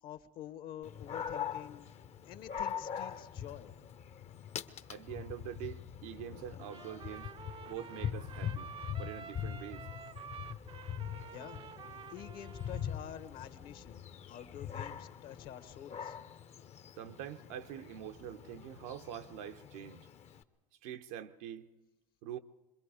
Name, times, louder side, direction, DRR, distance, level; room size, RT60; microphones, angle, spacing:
voice 1, 0.0-1.9 2.2-3.7 11.3-11.6 12.1-16.2, left 10 dB, 55° left, 1.3 m, -48 dB
Dog, 0.8-20.4, left 8 dB, 35° left, 0.9 m, -43 dB
voice 2, 4.9-7.3 7.7-8.7 9.0-9.8 16.9-20.1 20.8-21.7 22.2-22.4, right 10 dB, 70° right, 0.9 m, -45 dB
Trumpet, 6.6-13.2, right 6 dB, 30° right, 0.6 m, -50 dB
26.0 x 21.5 x 4.9 m
supercardioid pair, 95°, 18 cm